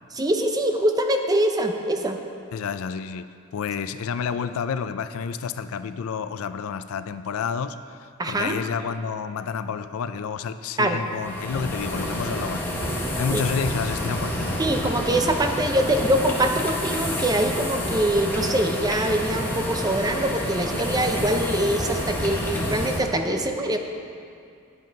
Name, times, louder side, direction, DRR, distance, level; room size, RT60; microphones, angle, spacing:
voice 1, 0.2-2.2 8.2-8.6 10.8-11.0 13.3-13.4 14.6-23.8, right 1 dB, 15° right, 4 dB, 0.6 m, -24 dB
voice 2, 2.5-14.6, left 6 dB, 65° left, 12 dB, 0.4 m, -30 dB
sound 1, 11.1-23.0, left 1 dB, 10° left, 1.1 m, -28 dB
9.2 x 8.2 x 5.1 m, 2.4 s
head